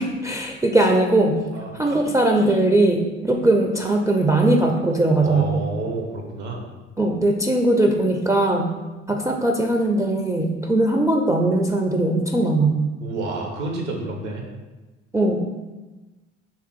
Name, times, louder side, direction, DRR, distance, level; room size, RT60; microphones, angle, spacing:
voice 1, 0.0-1.4 1.7-5.7 7.0-8.7 9.1-12.8 15.1-15.4, right 2 dB, 10° right, 1 dB, 0.3 m, -20 dB
voice 2, 1.5-1.9 5.2-6.7 13.0-14.4, right 2 dB, 75° right, 2 dB, 0.8 m, -29 dB
3.4 x 2.7 x 4.4 m, 1.2 s
figure-of-eight pair, 50°, 35 cm